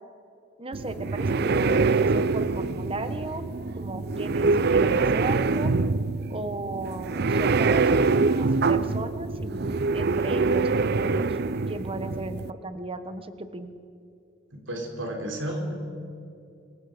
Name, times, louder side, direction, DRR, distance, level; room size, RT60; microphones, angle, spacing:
voice 1, 0.6-3.5 3.7-5.7 6.3-11.4 11.7-13.7, right 2 dB, 30° right, 10 dB, 1.3 m, -36 dB
sound 1, 0.7-12.5, right 4 dB, 60° right, 0.6 m, -24 dB
voice 2, 14.5-15.7, right 1 dB, 90° right, 2 dB, 3.9 m, -32 dB
29.0 x 22.5 x 5.2 m, 2.6 s
head